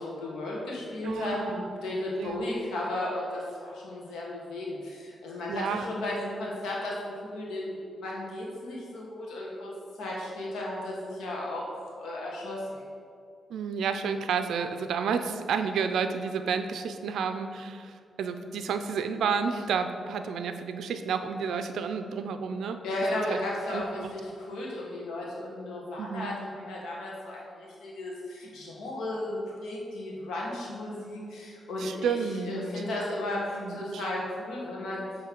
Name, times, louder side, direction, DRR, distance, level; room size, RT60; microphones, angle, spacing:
voice 1, 0.0-9.7 10.0-12.8 22.8-35.0, left 1 dB, 90° left, -4 dB, 1.4 m, -34 dB
voice 2, 1.0-1.7 2.2-2.4 5.5-5.9 13.5-22.8 23.3-23.4 23.7-24.1 26.0-26.3 31.8-32.8 33.5-34.1, right 6 dB, 80° right, 8 dB, 0.4 m, -31 dB
7.1 x 3.1 x 4.5 m, 2.4 s
cardioid pair, 75°, 0 cm